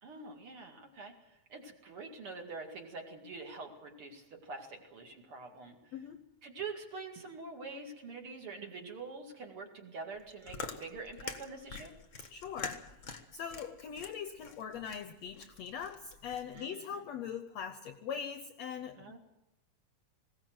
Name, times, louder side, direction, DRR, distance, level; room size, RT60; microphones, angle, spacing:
voice 1, 0.0-5.9 6.4-11.9 16.5-17.0 19.0-19.2, right 4 dB, 45° right, 3 dB, 2.7 m, -45 dB
voice 2, 5.9-6.2 12.3-12.9 13.3-19.2, left 7 dB, 70° left, 9 dB, 1.7 m, -41 dB
Chewing mastication, 10.1-16.6, left 5 dB, 50° left, 0.9 m, -46 dB
20.5 x 17.5 x 7.8 m, 0.93 s
omnidirectional pair, 3.9 m